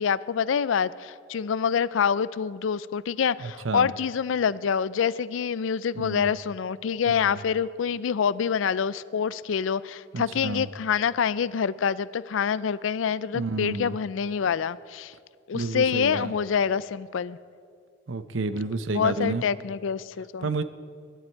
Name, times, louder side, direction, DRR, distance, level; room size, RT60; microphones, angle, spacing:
voice 1, 0.0-15.1 15.5-17.4 18.9-20.6, left 7 dB, 85° left, 19 dB, 0.4 m, -26 dB
voice 2, 3.4-3.9 6.0-6.3 7.3-7.4 10.1-10.7 13.3-14.0 15.5-16.3 18.1-19.4 20.4-20.6, right 3 dB, 80° right, 12 dB, 0.7 m, -30 dB
22.0 x 11.5 x 4.5 m, 2.2 s
head